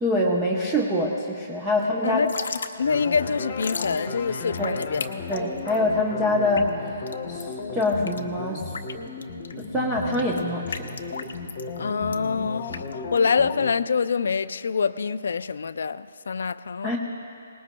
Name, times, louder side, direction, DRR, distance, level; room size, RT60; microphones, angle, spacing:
voice 1, 0.0-2.2 4.6-4.7 5.3-7.0 7.3-8.7 9.6-11.0 16.8-17.0, left 1 dB, 5° right, 0.8 m, -25 dB
voice 2, 2.0-2.4 2.8-5.0 11.8-17.0, left 5 dB, 70° left, 0.4 m, -25 dB
Drip / Trickle dribble, 2.1-13.7, left 5 dB, 85° left, 0.8 m, -38 dB
sound 1, 2.8-13.7, left 4 dB, 35° left, 1.0 m, -35 dB
25.0 x 19.0 x 2.3 m
hypercardioid pair, 175°, 0 cm